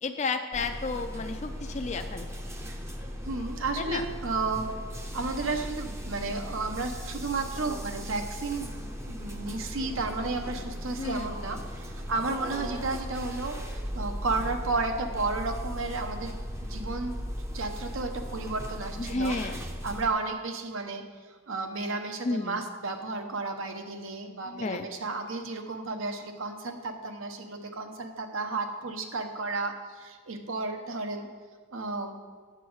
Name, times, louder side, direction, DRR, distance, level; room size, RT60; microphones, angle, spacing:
voice 1, 0.0-2.3 3.8-4.0 11.0-11.3 19.0-19.6 22.2-22.6 24.5-24.9, left 3 dB, 35° left, 6 dB, 0.4 m, -32 dB
sound 1, 0.5-20.1, equal, 15° right, 0.6 m, -37 dB
voice 2, 3.2-4.7 5.1-17.1 17.5-21.0 21.3-31.3 31.7-32.1, right 3 dB, 75° right, 5 dB, 0.9 m, -33 dB
9.2 x 7.2 x 4.7 m, 1.5 s
head